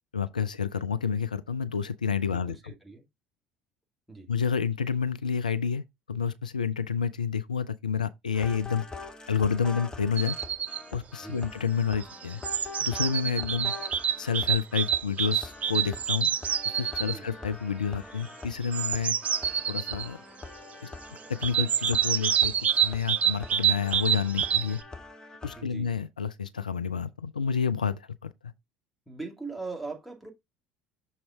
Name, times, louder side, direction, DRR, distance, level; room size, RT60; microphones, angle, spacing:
voice 1, 0.1-2.7 4.3-5.8 6.1-8.8 9.3-10.4 10.9-12.4 12.8-13.7 14.2-16.3 16.7-19.1 19.7-20.2 21.3-22.5 22.8-24.8 25.4-28.3, left 6 dB, 85° left, 0.3 m, -29 dB
voice 2, 2.2-3.0 4.1-4.3 11.2-11.4 17.0-17.2 25.6-25.9 29.1-30.3, right 3 dB, ahead, 2.3 m, -40 dB
sound 1, 8.3-25.6, left 3 dB, 20° left, 1.1 m, -44 dB
sound 2, 10.2-10.8 11.9-17.2 18.5-20.1 21.4-24.8, right 9 dB, 35° right, 0.5 m, -27 dB
6.4 x 4.2 x 3.7 m
figure-of-eight pair, 65°, 4 cm